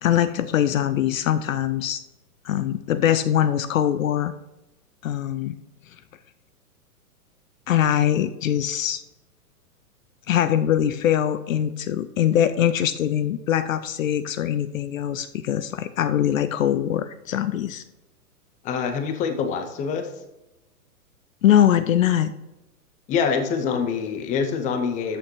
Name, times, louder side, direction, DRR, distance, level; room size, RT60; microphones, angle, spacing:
voice 1, 0.0-2.0 2.4-4.3 5.0-5.5 7.7-9.0 10.3-17.8 21.4-22.3, left 10 dB, 60° left, 13 dB, 0.6 m, -22 dB
voice 2, 18.6-20.1 23.1-25.2, left 6 dB, 15° left, 7 dB, 0.6 m, -25 dB
13.5 x 6.3 x 3.1 m, 1.0 s
figure-of-eight pair, 110°, 45 cm